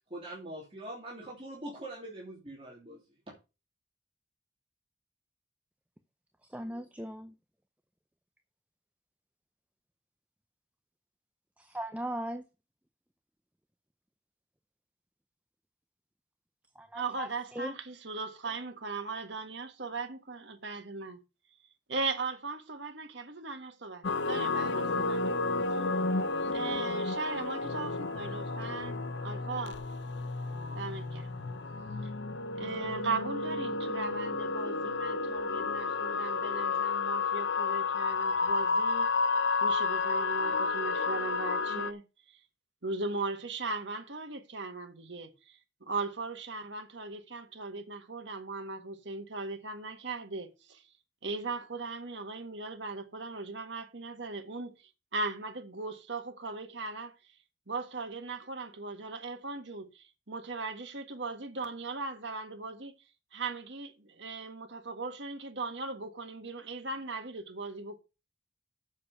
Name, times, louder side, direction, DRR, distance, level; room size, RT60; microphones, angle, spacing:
voice 1, 0.1-3.0, right 1 dB, 30° right, 2.8 m, -43 dB
voice 2, 6.5-7.3 11.6-12.4 16.8-17.3 17.6-17.7, right 1 dB, 10° right, 0.6 m, -38 dB
voice 3, 16.9-21.2 21.9-25.2 25.7-25.8 26.5-29.8 30.8-31.3 32.6-39.1 39.6-42.0 42.3-42.4 42.8-50.8 51.2-54.7 55.1-57.2 57.7-62.9 63.3-68.0, right 3 dB, 75° right, 1.6 m, -38 dB
sound 1, 24.0-41.9, left 3 dB, 75° left, 0.7 m, -31 dB
7.4 x 6.9 x 6.6 m
head